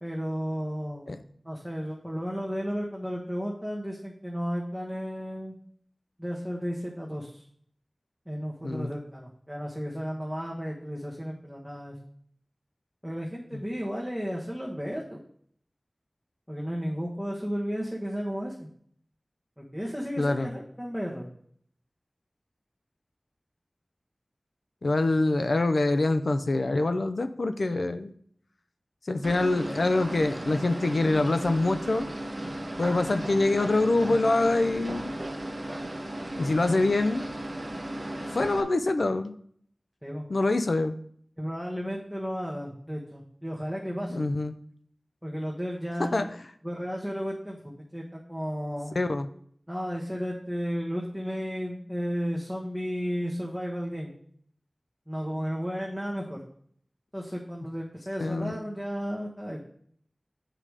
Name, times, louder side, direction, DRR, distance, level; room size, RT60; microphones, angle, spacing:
voice 1, 0.0-1.1 1.4-5.5 6.2-7.4 8.3-12.0 13.0-15.2 16.5-18.7 19.6-21.3 40.0-40.3 41.4-44.3 45.2-46.1 46.6-48.9 49.7-54.1 55.1-56.4 57.1-59.6, equal, ahead, -3 dB, 1.2 m, -33 dB
voice 2, 8.6-9.0 20.2-20.5 24.8-28.1 29.1-32.0 32.8-35.2 36.4-37.2 38.3-39.4 40.3-41.0 44.1-44.6 46.0-46.3 49.0-49.3 58.2-58.6, left 2 dB, 85° left, 9 dB, 0.5 m, -25 dB
sound 1, 29.2-38.6, right 1 dB, 45° right, 1.1 m, -35 dB
7.7 x 4.9 x 4.9 m, 0.62 s
wide cardioid pair, 50°, 0 cm